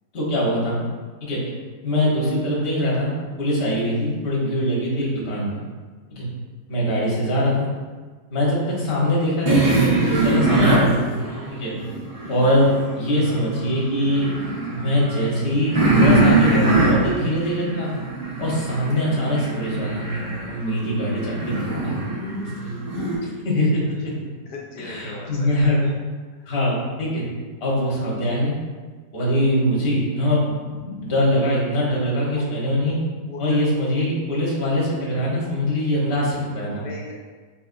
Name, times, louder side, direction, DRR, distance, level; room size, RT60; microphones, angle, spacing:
voice 1, 0.1-0.8 1.2-1.4 1.8-3.1 3.4-5.6 6.1-6.3 6.7-7.7 8.3-11.1 11.5-11.7 12.3-14.3 14.7-17.9 18.4-20.2 20.5-22.0 22.6-22.7 23.2-23.8 24.8-25.8 26.5-27.2 27.6-28.6 29.1-33.0 33.4-36.8, equal, 40° left, -5 dB, 1.2 m, -22 dB
sound 1, 9.5-12.8 13.2-23.1, right 2 dB, 25° right, 0.7 m, -23 dB
voice 2, 24.5-25.9 32.3-32.4 33.3-33.6 36.8-37.1, left 3 dB, 80° left, -2 dB, 1.2 m, -38 dB
4.3 x 3.6 x 2.5 m, 1.5 s
omnidirectional pair, 1.8 m